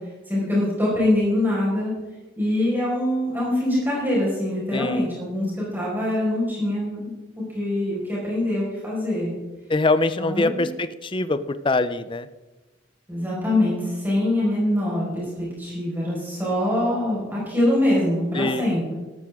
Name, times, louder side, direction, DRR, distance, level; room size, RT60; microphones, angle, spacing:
voice 1, 0.3-1.9 2.4-7.1 7.5-9.3 10.2-10.7 13.1-13.8 14.0-15.2 15.6-19.0, left 1 dB, 10° right, -6 dB, 4.8 m, -23 dB
voice 2, 4.7-5.1 9.7-12.3 18.3-18.7, left 2 dB, 25° left, 13 dB, 0.5 m, -23 dB
13.0 x 13.0 x 3.6 m, 1.2 s
head